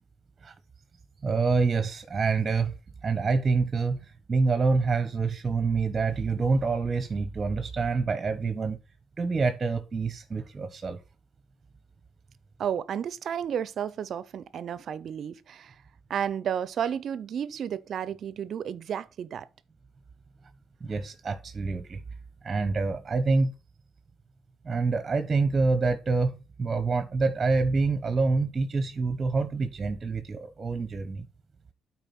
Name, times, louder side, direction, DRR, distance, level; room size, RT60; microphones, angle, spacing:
voice 1, 1.2-2.8 3.0-8.8 9.2-11.0 20.8-22.0 22.4-23.5 24.6-26.3 26.6-31.3, right 4 dB, 30° right, 1.1 m, -26 dB
voice 2, 12.6-15.7 16.1-19.5, right 8 dB, 65° right, 0.6 m, -32 dB
9.0 x 4.7 x 5.9 m
cardioid pair, 90°, 0 cm